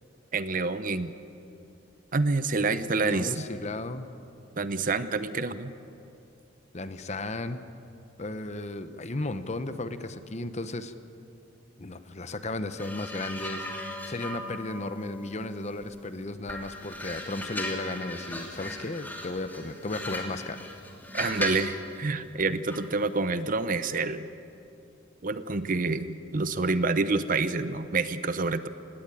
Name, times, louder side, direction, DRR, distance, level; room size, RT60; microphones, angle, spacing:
voice 1, 0.3-1.1 2.1-3.5 4.6-5.7 21.1-24.3 25.2-28.7, right 3 dB, 45° right, 12 dB, 0.7 m, -27 dB
voice 2, 3.0-4.1 6.7-7.6 8.2-10.9 11.8-20.7, left 2 dB, 35° left, 11 dB, 0.9 m, -35 dB
sound 1, 12.8-16.0 16.5-21.7 22.7-22.9, left 1 dB, 10° left, 2.7 m, -38 dB
18.5 x 17.5 x 9.2 m, 2.6 s
head